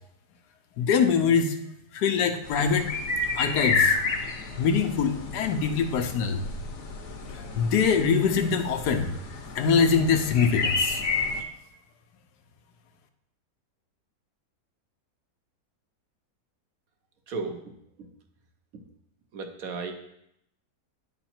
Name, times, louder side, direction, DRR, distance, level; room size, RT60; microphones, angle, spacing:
voice 1, 0.8-1.6 1.9-2.9 3.3-4.0 4.6-6.5 7.6-9.1 9.5-11.0, left 6 dB, 80° left, 7 dB, 1.3 m, -23 dB
sound 1, 2.4-11.4, left 4 dB, 55° left, 1.1 m, -30 dB
voice 2, 17.3-17.6 19.3-19.9, right 4 dB, 65° right, 4 dB, 1.2 m, -33 dB
9.9 x 4.0 x 4.3 m, 0.78 s
omnidirectional pair, 1.7 m